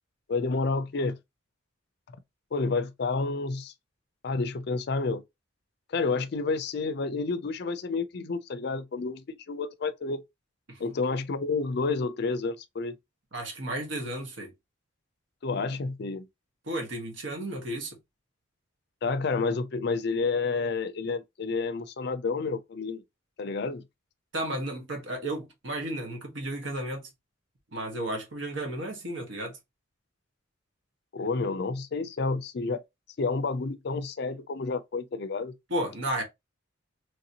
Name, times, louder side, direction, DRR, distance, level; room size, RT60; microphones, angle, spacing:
voice 1, 0.3-1.2 2.5-3.7 4.2-5.2 5.9-10.2 10.8-13.0 15.4-16.3 19.0-23.0 23.4-23.8 31.1-32.8 33.2-35.5, left 4 dB, 55° left, 0.4 m, -30 dB
voice 2, 13.3-14.5 16.7-18.0 24.3-27.1 27.7-29.6 35.7-36.2, right 1 dB, 65° right, 1.1 m, -33 dB
3.1 x 2.8 x 2.7 m
head